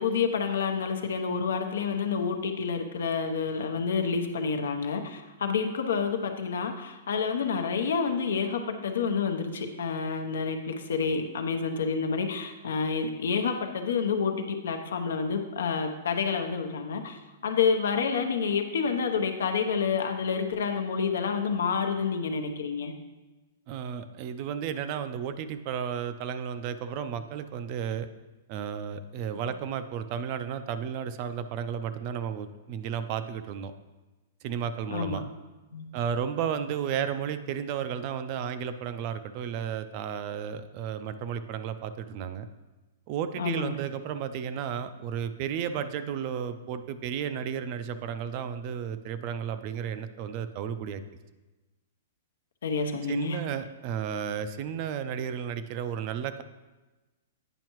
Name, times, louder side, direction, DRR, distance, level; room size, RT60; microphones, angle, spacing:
voice 1, 0.0-22.9 29.3-29.4 34.9-35.2 35.7-36.0 43.4-43.8 52.6-53.4, left 5 dB, 85° left, 6 dB, 0.8 m, -29 dB
voice 2, 23.7-28.1 28.5-33.7 34.4-35.2 35.9-42.5 43.1-51.0 53.1-56.4, right 8 dB, 40° right, 11 dB, 0.4 m, -33 dB
8.9 x 5.5 x 3.0 m, 1.2 s
hypercardioid pair, 155°, 0 cm